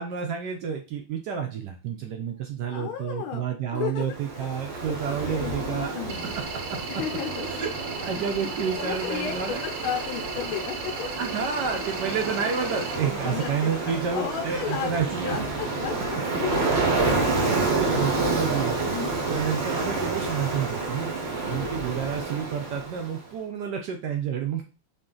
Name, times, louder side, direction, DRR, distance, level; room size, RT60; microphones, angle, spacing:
voice 1, 0.0-5.9 6.2-6.3 6.7-6.8 7.5-7.7 8.0-9.6 11.2-15.4 17.3-21.1 21.5-24.7, right 7 dB, 75° right, 3 dB, 1.0 m, -30 dB
voice 2, 2.7-3.4 3.7-4.4 4.8-5.0 5.2-6.3 6.9-7.6 8.7-11.1 13.2-14.9 15.2-16.7 18.9-19.4 21.4-21.8, left 9 dB, 80° left, 2 dB, 1.4 m, -34 dB
Ocean, 4.1-23.2, right 3 dB, 50° right, 0.8 m, -29 dB
sound 1, 6.1-13.0, right 5 dB, 90° right, 1.5 m, -38 dB
3.9 x 2.4 x 3.7 m, 0.33 s
omnidirectional pair, 2.2 m